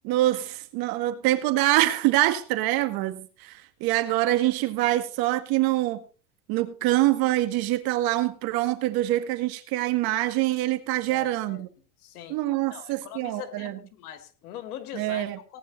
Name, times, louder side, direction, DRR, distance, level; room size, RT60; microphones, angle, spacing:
voice 1, 0.0-6.0 6.5-11.7 12.3-13.8 14.9-15.4, right 16 dB, 55° right, 2.0 m, -25 dB
voice 2, 11.1-11.6 12.0-12.4 12.7-13.7 14.0-15.2 15.5-15.6, left 11 dB, 80° left, 2.7 m, -41 dB
18.5 x 10.0 x 4.2 m
supercardioid pair, 125°, 45 cm